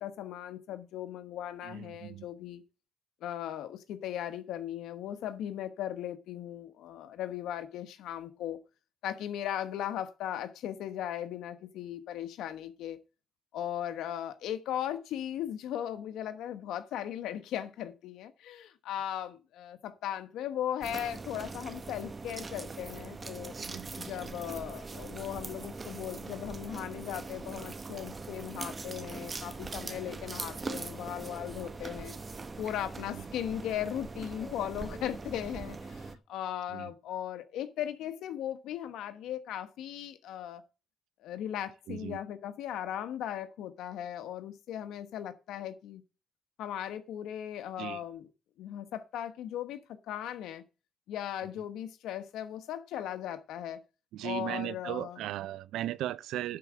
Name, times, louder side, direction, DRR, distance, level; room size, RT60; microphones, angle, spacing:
voice 1, 0.0-2.6 3.2-8.6 9.0-13.0 13.5-23.5 24.0-32.1 32.6-40.6 41.2-46.0 46.6-48.3 48.6-50.6 51.1-53.8 54.2-55.2, left 10 dB, 85° left, 1.1 m, -37 dB
voice 2, 1.6-2.3 23.6-23.9 33.1-33.3 36.7-36.9 41.9-42.2 47.8-48.0 54.1-56.6, right 13 dB, 85° right, 0.5 m, -37 dB
sound 1, 20.8-36.2, right 3 dB, 30° right, 0.9 m, -42 dB
Subway metro underground, 29.1-35.7, left 1 dB, 20° left, 4.1 m, -55 dB
11.0 x 4.8 x 7.3 m
cardioid pair, 90°, 0 cm